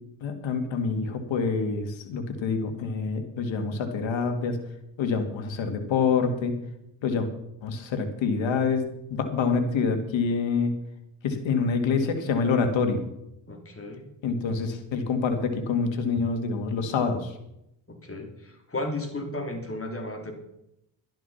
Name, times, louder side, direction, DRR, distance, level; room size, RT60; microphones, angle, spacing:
voice 1, 0.2-4.6 5.0-6.5 7.0-7.3 7.6-8.8 9.1-10.7 11.2-13.0 14.2-17.3, left 5 dB, 70° left, 6 dB, 2.3 m, -26 dB
voice 2, 13.5-14.0 18.0-20.3, left 2 dB, 30° left, 4 dB, 3.5 m, -34 dB
12.0 x 10.5 x 5.8 m, 0.81 s
supercardioid pair, 65°, 47 cm